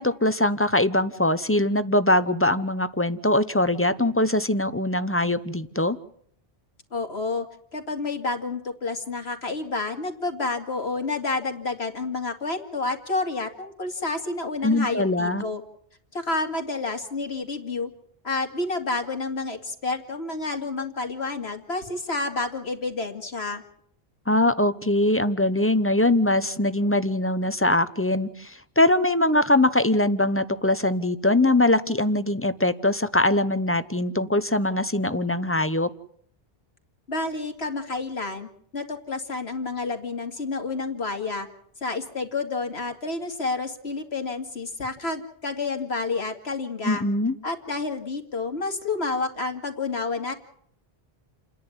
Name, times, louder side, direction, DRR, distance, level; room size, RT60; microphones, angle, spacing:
voice 1, 0.0-6.0 14.6-15.4 24.3-35.9 46.8-47.4, left 1 dB, 15° left, 13 dB, 0.8 m, -22 dB
voice 2, 6.9-7.5 7.7-15.6 16.1-17.9 18.2-23.6 37.1-41.5 41.8-47.0 47.4-50.3, left 3 dB, 90° left, 4 dB, 2.7 m, -29 dB
29.5 x 10.5 x 9.8 m, 0.65 s
omnidirectional pair, 1.0 m